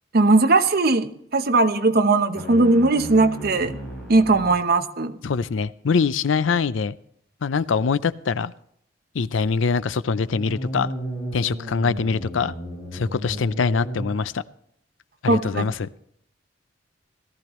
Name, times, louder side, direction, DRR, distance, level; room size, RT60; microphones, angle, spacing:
voice 1, 0.1-3.8 4.1-5.2 15.3-15.7, right 3 dB, 55° right, 9 dB, 0.9 m, -19 dB
sound 1, 2.3-4.7 10.1-14.1, equal, 5° left, 5.9 m, -34 dB
voice 2, 5.2-7.0 7.4-8.5 9.1-10.9 11.3-12.5 12.9-14.4 15.2-15.9, left 5 dB, 85° left, 16 dB, 0.5 m, -23 dB
17.5 x 13.5 x 3.1 m, 0.72 s
head